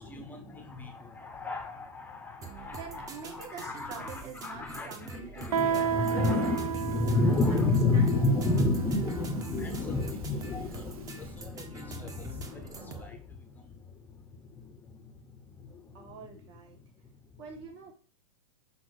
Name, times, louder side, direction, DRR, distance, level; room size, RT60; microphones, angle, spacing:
voice 1, 0.0-13.7 14.6-15.1 15.6-15.9, left 2 dB, 10° left, 7 dB, 0.8 m, -31 dB
sound 1, 2.4-13.1, right 4 dB, 20° right, 1.1 m, -46 dB
voice 2, 2.7-7.7 7.9-8.2 15.9-16.8 17.4-17.9, right 5 dB, 45° right, 2 dB, 3.2 m, -46 dB
Guitar, 5.5-11.0, right 8 dB, 75° right, 0.8 m, -33 dB
6.1 x 5.5 x 6.4 m, 0.39 s
hypercardioid pair, 145°, 19 cm